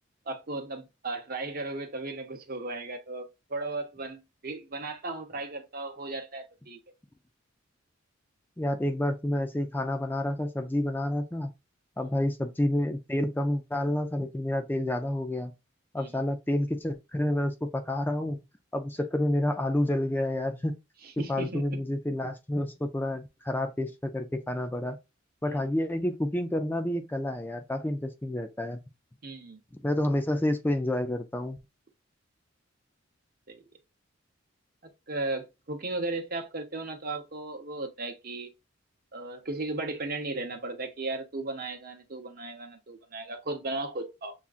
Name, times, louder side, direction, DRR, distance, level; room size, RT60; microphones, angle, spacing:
voice 1, 0.3-6.8 16.0-16.1 21.0-21.8 25.5-25.7 29.2-29.6 33.5-33.6 34.8-38.5 39.1-44.3, right 2 dB, 45° right, 0.9 m, -36 dB
voice 2, 8.6-11.5 12.0-15.5 15.9-18.4 18.7-20.7 21.3-25.0 25.4-28.8 29.8-31.6, left 1 dB, 10° left, 0.4 m, -29 dB
7.0 x 2.4 x 2.4 m
head